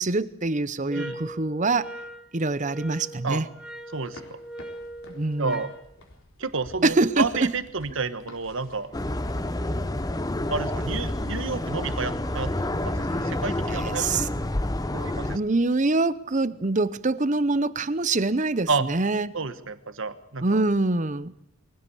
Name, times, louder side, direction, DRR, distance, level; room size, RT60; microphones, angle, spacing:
voice 1, 0.0-1.9 2.3-3.5 5.1-5.6 6.8-7.5 13.5-14.3 15.2-19.3 20.4-21.3, right 3 dB, 35° right, 16 dB, 0.8 m, -25 dB
sound 1, 0.9-5.8, equal, 5° right, 1.6 m, -40 dB
sound 2, 3.9-9.4, left 1 dB, 65° left, 3.9 m, -50 dB
voice 2, 3.9-4.4 5.4-5.7 6.4-8.9 10.5-14.2 14.9-15.4 18.7-18.9 19.3-20.6, right 4 dB, 60° right, 12 dB, 1.3 m, -30 dB
sound 3, 8.9-15.4, left 1 dB, 15° left, 0.8 m, -28 dB
22.5 x 16.5 x 8.5 m, 0.78 s
head